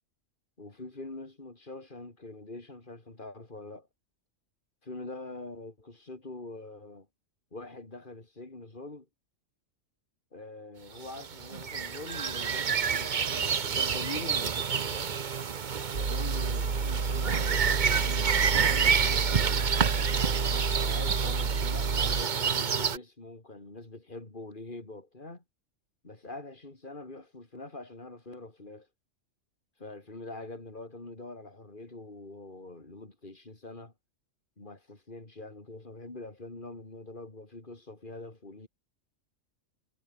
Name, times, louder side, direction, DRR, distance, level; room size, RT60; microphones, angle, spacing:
voice 1, 0.6-3.9 4.8-7.1 7.5-9.1 10.3-15.2 15.9-19.9 20.3-25.4 26.0-28.9 29.8-33.9 34.6-38.7, left 2 dB, 40° left, 3.7 m, -44 dB
sound 1, 11.1-23.0, right 6 dB, 40° right, 0.9 m, -29 dB
sound 2, 15.9-22.2, right 4 dB, 70° right, 2.5 m, -30 dB
omnidirectional pair, 1.3 m